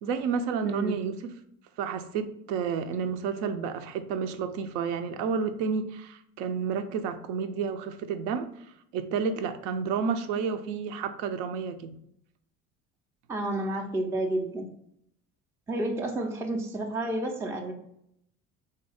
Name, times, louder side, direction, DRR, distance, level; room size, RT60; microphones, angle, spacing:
voice 1, 0.0-1.3 1.8-8.5 8.9-12.0, right 6 dB, 55° right, 9 dB, 0.6 m, -30 dB
voice 2, 0.6-1.0 13.3-14.7 15.7-17.7, right 1 dB, 5° right, 2 dB, 0.4 m, -30 dB
3.7 x 2.8 x 3.3 m, 0.74 s
figure-of-eight pair, 60°, 43 cm